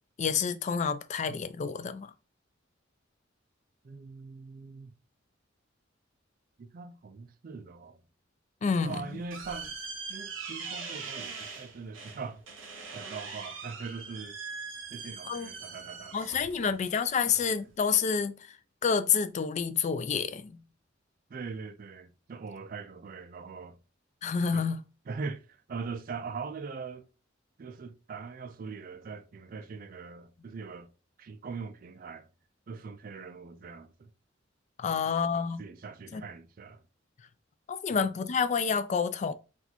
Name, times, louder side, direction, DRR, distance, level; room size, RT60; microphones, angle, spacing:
voice 1, 0.2-2.1 8.6-9.0 15.2-15.5 16.1-18.6 18.8-20.6 24.2-24.8 34.8-35.6 36.1-36.2 37.7-39.3, left 6 dB, 35° left, 0.3 m, -28 dB
voice 2, 3.8-4.9 6.6-8.0 8.8-9.7 10.1-12.4 12.9-14.4 14.9-16.8 21.3-23.8 24.5-24.7 25.1-27.1 27.6-30.9 31.2-32.3 32.7-34.1 34.9-36.8 37.9-38.0, right 4 dB, 45° right, 0.4 m, -42 dB
sound 1, 8.7-17.8, right 5 dB, 75° right, 0.8 m, -42 dB
2.9 x 2.4 x 4.0 m
head